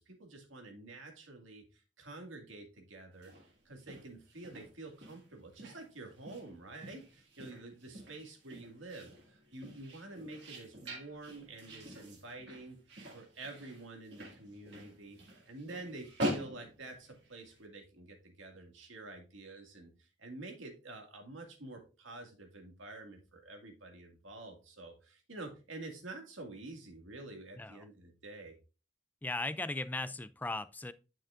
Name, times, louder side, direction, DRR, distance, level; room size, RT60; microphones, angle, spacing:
voice 1, 0.0-3.3 3.7-12.8 13.1-15.2 15.5-28.6, right 2 dB, 90° right, 2.1 m, -48 dB
sound 1, 3.1-17.6, equal, 60° right, 2.2 m, -45 dB
voice 2, 29.2-30.9, left 2 dB, 10° left, 0.3 m, -37 dB
9.9 x 5.9 x 2.5 m
head